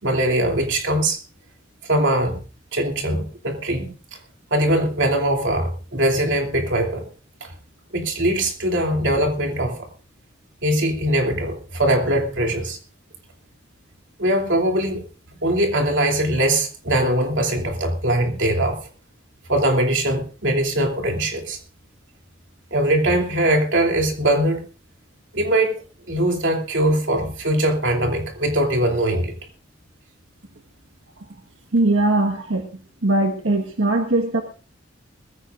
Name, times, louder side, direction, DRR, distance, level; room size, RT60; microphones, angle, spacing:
voice 1, 0.0-1.2 1.8-2.4 2.7-3.9 4.5-7.0 7.4-7.5 7.9-9.8 10.6-12.8 14.2-15.0 15.4-18.8 19.5-21.6 22.7-24.6 25.3-25.8 26.1-29.3 32.4-32.5, right 1 dB, 65° right, 2 dB, 3.0 m, -21 dB
voice 2, 31.7-32.7 33.0-34.4, right 2 dB, 90° right, 2 dB, 1.5 m, -20 dB
21.0 x 14.5 x 2.5 m, 0.36 s
head